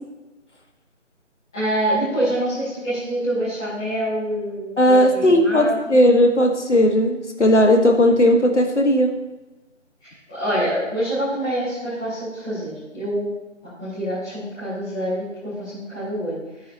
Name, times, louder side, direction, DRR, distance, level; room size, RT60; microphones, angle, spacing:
voice 1, 1.5-5.7 10.0-13.3 13.8-16.3, right 1 dB, 5° left, -18 dB, 1.2 m, -26 dB
voice 2, 4.8-9.1, left 1 dB, 65° left, 3 dB, 1.6 m, -16 dB
12.0 x 9.3 x 3.0 m, 1.0 s
figure-of-eight pair, 160°, 38 cm